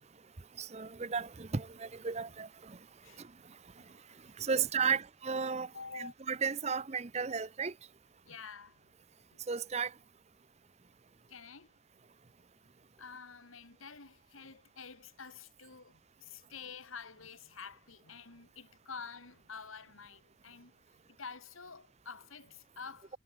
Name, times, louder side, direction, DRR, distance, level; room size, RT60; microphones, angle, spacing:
voice 1, 0.6-2.8 3.2-3.3 4.4-7.7 9.5-9.9, right 6 dB, 30° right, 0.6 m, -34 dB
voice 2, 3.7-4.5 5.7-6.1 8.3-8.9 9.3-9.4 11.3-11.7 13.0-20.8 21.1-23.2, left 5 dB, 85° left, 2.7 m, -49 dB
head